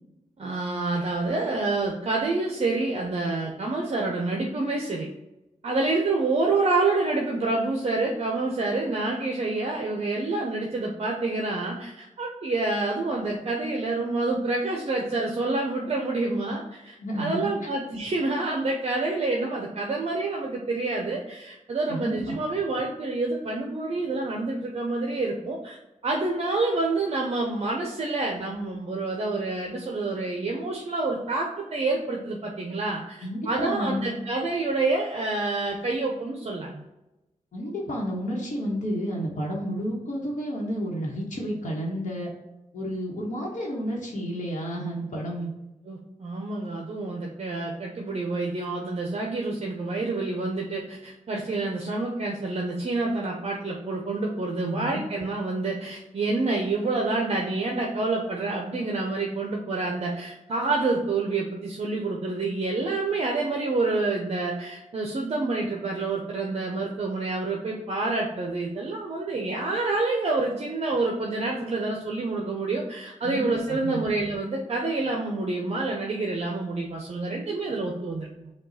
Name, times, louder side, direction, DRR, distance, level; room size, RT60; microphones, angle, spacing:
voice 1, 0.4-5.1 5.6-36.8 45.9-78.5, right 3 dB, 55° right, 0 dB, 0.7 m, -28 dB
voice 2, 17.0-17.7 21.9-22.4 33.2-34.1 37.5-42.3 42.7-45.5 54.6-55.0 73.2-74.1, equal, 80° left, -3 dB, 1.2 m, -31 dB
5.2 x 2.4 x 4.0 m, 0.95 s
wide cardioid pair, 105°, 13 cm